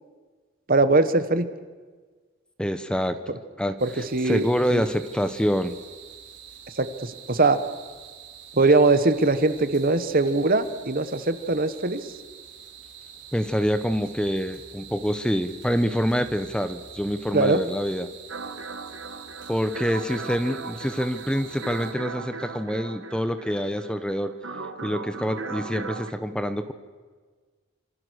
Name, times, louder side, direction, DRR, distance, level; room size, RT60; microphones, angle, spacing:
voice 1, 0.7-1.5 3.8-4.8 6.8-7.6 8.5-12.0 17.3-17.6, right 3 dB, 50° right, 11 dB, 1.4 m, -21 dB
voice 2, 2.6-3.8 4.2-5.8 13.3-18.1 19.5-24.3 24.8-26.7, equal, 5° left, 10 dB, 1.0 m, -26 dB
sound 1, 3.8-21.9, right 7 dB, 70° right, 4.9 m, -46 dB
sound 2, 18.3-26.1, right 4 dB, 85° right, 1.7 m, -37 dB
26.5 x 26.0 x 6.5 m, 1.5 s
head